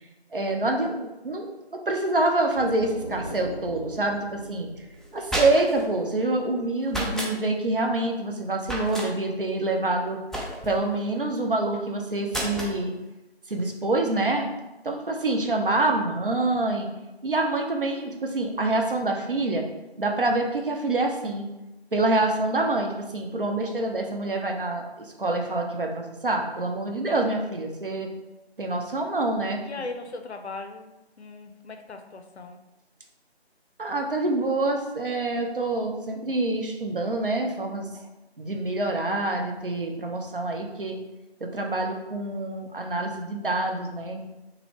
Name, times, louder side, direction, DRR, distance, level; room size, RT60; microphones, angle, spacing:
voice 1, 0.3-4.7 5.1-10.2 10.7-12.9 13.5-14.5 14.8-16.9 17.2-19.7 20.0-21.5 21.9-28.1 28.6-29.6 33.8-38.0 38.4-41.0 41.4-44.3, right 2 dB, 55° right, 3 dB, 0.5 m, -26 dB
sound 1, 2.6-6.3, right 2 dB, 90° right, 1.4 m, -41 dB
sound 2, 5.0-5.9 6.9-7.3 8.6-9.1 10.3-10.8 12.3-12.8, right 1 dB, ahead, 0.3 m, -30 dB
voice 2, 29.6-32.6, left 3 dB, 80° left, 5 dB, 0.5 m, -38 dB
2.7 x 2.6 x 3.0 m, 0.99 s
figure-of-eight pair, 170°, 32 cm